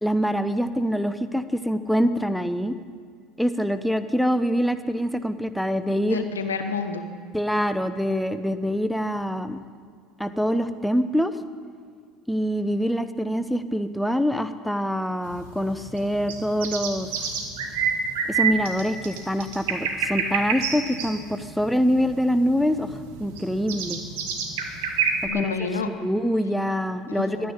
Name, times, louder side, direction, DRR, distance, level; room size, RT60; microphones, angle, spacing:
voice 1, 0.0-2.8 3.4-6.2 7.3-9.6 10.2-11.3 12.3-17.3 18.3-22.9 23.2-24.0 25.2-25.5 25.8-27.5, equal, ahead, 10 dB, 0.8 m, -25 dB
voice 2, 6.1-7.1 25.2-25.9 27.1-27.5, left 5 dB, 85° left, 7 dB, 0.9 m, -29 dB
sound 1, 15.3-25.3, right 6 dB, 70° right, 1.9 m, -28 dB
12.0 x 10.0 x 8.9 m, 2.1 s
hypercardioid pair, 70°, 0 cm